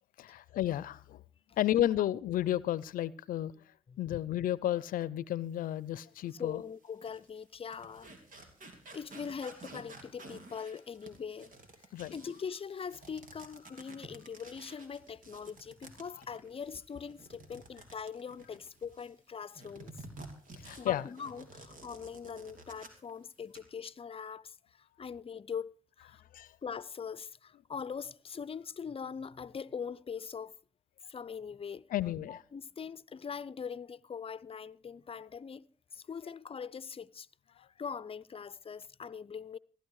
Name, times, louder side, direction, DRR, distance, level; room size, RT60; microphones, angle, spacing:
voice 1, 0.2-1.2 1.6-3.5 4.0-6.6 11.9-12.1 20.6-21.1 26.3-26.5 31.9-32.4, left 12 dB, 80° left, 0.6 m, -32 dB
sound 1, 6.2-6.3 6.9-19.1 19.5-23.1 23.4-23.6, right 2 dB, 70° right, 3.1 m, -52 dB
voice 2, 6.3-8.1 8.9-11.5 12.1-20.0 20.8-26.2 26.6-30.6 31.1-31.9 32.3-35.7 35.9-37.3 37.6-39.6, left 6 dB, 40° left, 0.6 m, -42 dB
15.5 x 12.5 x 4.8 m
supercardioid pair, 50°, 14 cm